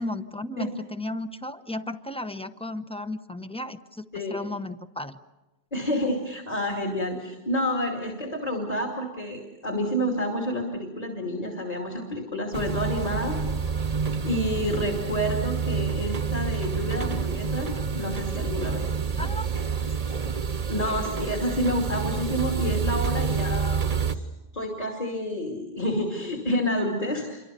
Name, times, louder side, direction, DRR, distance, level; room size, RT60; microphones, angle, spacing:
voice 1, 0.0-5.2 19.2-19.5 20.8-20.9, left 1 dB, 5° left, 10 dB, 0.8 m, -35 dB
voice 2, 4.1-4.5 5.7-13.4 14.2-17.7 17.9-18.9 20.7-23.8 24.1-24.2 24.5-27.4, equal, 40° left, 1 dB, 2.8 m, -29 dB
sound 1, 12.5-24.1, right 6 dB, 40° right, 1.1 m, -28 dB
28.0 x 24.0 x 6.8 m, 1.1 s
omnidirectional pair, 1.0 m